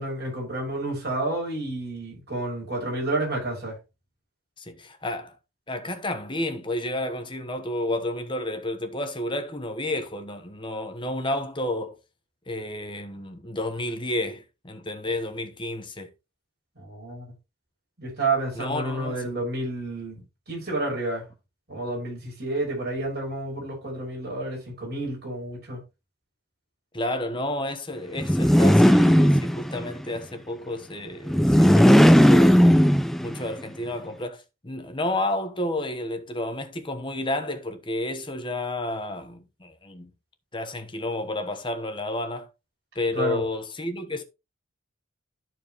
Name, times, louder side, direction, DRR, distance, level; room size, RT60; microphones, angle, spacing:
voice 1, 0.0-3.8 16.8-17.3 18.0-21.3 21.7-25.8 43.1-43.4, right 2 dB, 45° right, 5.9 m, -30 dB
voice 2, 4.6-5.4 5.7-12.0 12.5-16.1 18.6-19.4 26.9-32.6 33.2-40.1 40.5-42.5 42.9-44.2, left 1 dB, 20° left, 1.0 m, -31 dB
sound 1, 28.2-29.9 31.3-33.4, equal, ahead, 0.4 m, -16 dB
13.0 x 4.6 x 3.0 m
head